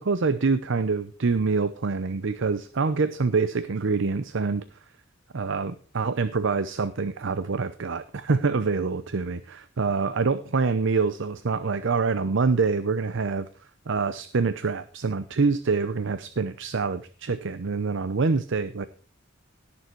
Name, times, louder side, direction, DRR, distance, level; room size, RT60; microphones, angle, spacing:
voice 1, 0.0-4.6 5.3-13.5 13.9-18.9, right 4 dB, 65° right, 13 dB, 0.7 m, -26 dB
18.0 x 6.9 x 4.5 m, 0.39 s
head